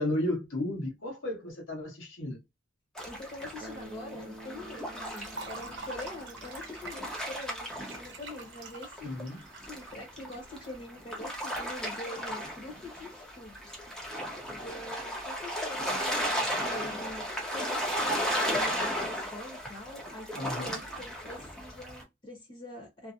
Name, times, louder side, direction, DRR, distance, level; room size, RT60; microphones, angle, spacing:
voice 1, 0.0-2.4 9.0-9.4 20.4-20.8, left 1 dB, 70° left, 1.1 m, -33 dB
sound 1, 2.9-8.6 9.0-22.0, equal, 5° left, 0.7 m, -35 dB
voice 2, 3.0-9.1 9.7-13.8 14.5-17.3 17.5-23.1, left 1 dB, 30° left, 0.9 m, -44 dB
Bass guitar, 3.6-7.6, right 1 dB, 25° right, 0.4 m, -50 dB
Liquid, 5.1-11.2, right 3 dB, 60° right, 0.7 m, -46 dB
2.7 x 2.0 x 2.4 m
head